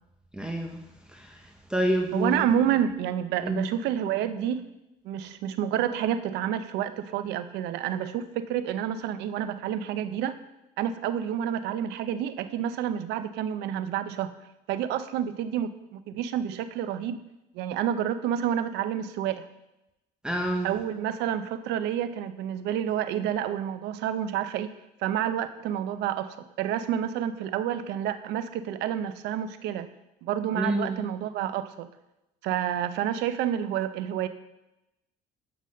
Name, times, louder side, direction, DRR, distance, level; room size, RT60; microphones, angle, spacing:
voice 1, 0.3-0.8 1.2-1.3 1.7-2.5 3.4-3.6 20.2-20.7 30.6-31.0, right 1 dB, 5° right, 2 dB, 0.9 m, -27 dB
voice 2, 2.1-4.6 5.0-10.4 10.8-14.3 14.7-17.2 17.5-19.5 20.6-24.7 25.0-29.9 30.2-31.9 32.4-34.3, right 10 dB, 85° right, 12 dB, 0.7 m, -29 dB
11.5 x 4.1 x 6.4 m, 0.94 s
cardioid pair, 110°, 17 cm